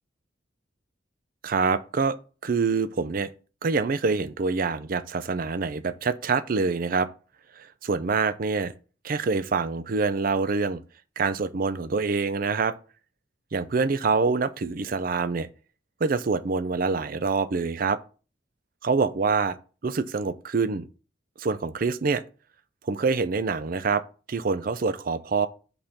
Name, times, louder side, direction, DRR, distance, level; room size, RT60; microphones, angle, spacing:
voice 1, 1.4-2.2 2.4-3.3 3.6-7.1 7.6-8.7 9.0-10.8 11.2-12.7 13.5-15.5 16.0-18.0 18.8-19.6 19.8-20.9 21.4-22.2 22.9-25.5, right 4 dB, 50° right, 0.5 m, -25 dB
5.4 x 4.3 x 5.8 m
head